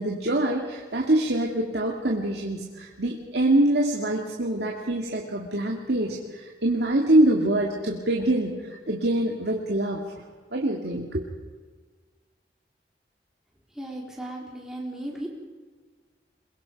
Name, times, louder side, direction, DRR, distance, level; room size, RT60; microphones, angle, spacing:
voice 1, 0.0-8.6 8.9-10.0 10.5-11.2, right 1 dB, 80° right, -1 dB, 2.1 m, -24 dB
voice 2, 13.8-15.3, right 1 dB, 5° right, -2 dB, 3.8 m, -35 dB
22.5 x 22.0 x 5.2 m, 1.5 s
head